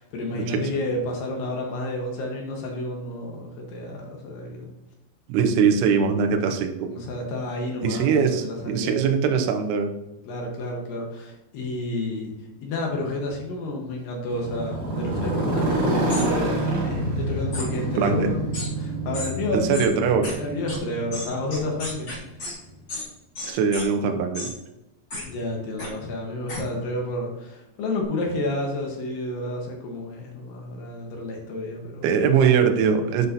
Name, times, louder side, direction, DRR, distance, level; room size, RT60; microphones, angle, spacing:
voice 1, 0.0-4.7 6.8-9.1 10.3-19.9 20.4-22.1 25.2-32.3, left 1 dB, 70° left, 0 dB, 2.4 m, -30 dB
voice 2, 5.3-6.9 7.8-9.9 18.0-18.3 19.5-20.3 23.5-24.5 32.0-33.3, right 6 dB, 75° right, 4 dB, 2.7 m, -21 dB
Motorcycle, 14.3-22.4, right 1 dB, 55° right, 4.0 m, -27 dB
sound 1, 16.1-16.3 17.5-17.7 18.5-18.7 19.1-19.3 19.7-19.9 20.2-20.3 20.7-20.8 21.1-22.5 22.9-23.1 23.3-23.8 24.3-24.5 25.1-25.2 25.8-25.9 26.5-26.6, left 2 dB, 40° left, 1.7 m, -33 dB
9.8 x 5.4 x 2.7 m, 0.94 s
omnidirectional pair, 5.1 m